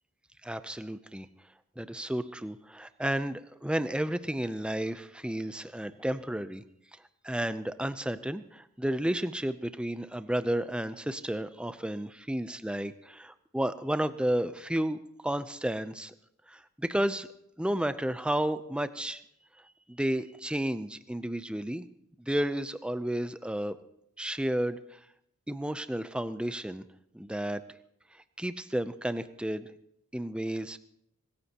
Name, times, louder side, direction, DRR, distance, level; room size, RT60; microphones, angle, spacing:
voice 1, 0.4-1.3 1.8-6.6 7.2-16.1 16.5-17.3 17.6-19.2 19.9-21.8 22.2-23.8 24.2-25.0 25.5-26.8 27.1-27.6 28.4-29.7 30.1-30.8, right 1 dB, 5° right, 12 dB, 0.5 m, -32 dB
25.0 x 14.5 x 2.9 m, 0.74 s
head